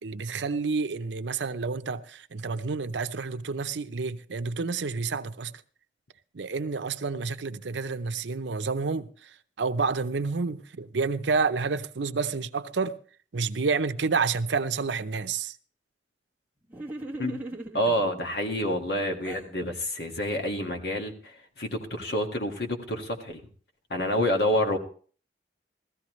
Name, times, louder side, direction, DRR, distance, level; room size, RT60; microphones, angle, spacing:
voice 1, 0.0-5.5 6.3-13.0 13.3-15.6, right 4 dB, 90° right, 0.7 m, -29 dB
sound 1, 16.7-18.0 18.7-19.5, right 2 dB, 10° right, 1.1 m, -39 dB
voice 2, 17.7-23.4 23.9-24.8, equal, 65° left, 1.7 m, -28 dB
16.0 x 14.0 x 3.1 m
head